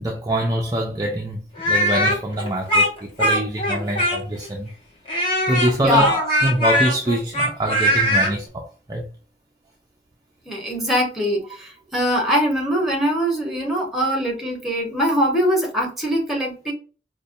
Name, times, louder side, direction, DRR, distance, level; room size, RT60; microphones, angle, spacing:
voice 1, 0.0-4.7 5.5-6.1 6.4-9.1, right 1 dB, 20° right, 0.4 m, -24 dB
Speech, 1.6-4.5 5.1-8.3, equal, 30° left, 1.2 m, -21 dB
voice 2, 5.8-6.2 10.5-16.7, equal, ahead, 1.0 m, -22 dB
5.1 x 2.2 x 2.6 m
head